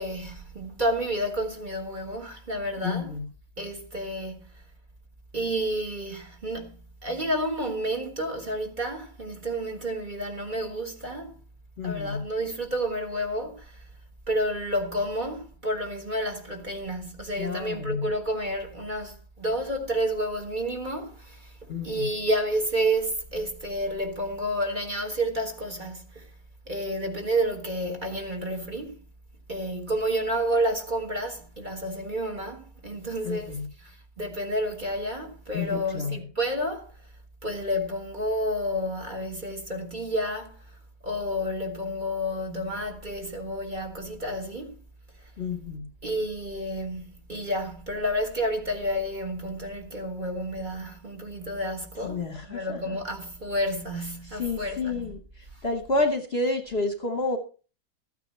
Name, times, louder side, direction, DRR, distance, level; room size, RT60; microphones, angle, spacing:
voice 1, 0.0-3.1 3.6-4.4 5.3-11.3 11.8-13.8 14.3-21.5 21.8-26.3 26.7-29.0 29.5-33.6 33.8-36.9 37.4-40.6 41.0-44.7 46.0-47.0 47.3-55.1, equal, 30° right, 1.6 m, -30 dB
voice 2, 2.8-3.3 11.8-12.3 17.4-18.1 21.7-22.1 33.2-33.7 35.5-36.3 45.4-45.9 52.0-53.0 54.2-57.4, left 3 dB, 40° left, 1.1 m, -30 dB
13.5 x 9.2 x 4.4 m
omnidirectional pair, 1.8 m